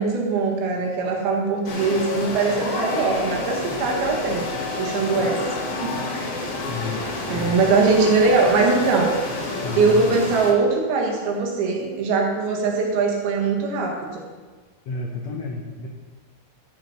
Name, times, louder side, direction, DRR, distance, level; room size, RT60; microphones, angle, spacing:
voice 1, 0.0-4.5 4.8-6.3 7.3-9.1 9.8-14.2, right 4 dB, 80° right, 0 dB, 3.5 m, -21 dB
sound 1, 1.7-10.5, left 3 dB, 50° left, 2.0 m, -29 dB
voice 2, 6.7-7.6 9.6-10.2 14.8-15.9, left 4 dB, 80° left, 1 dB, 1.5 m, -31 dB
12.5 x 6.8 x 5.4 m, 1.4 s
omnidirectional pair, 4.4 m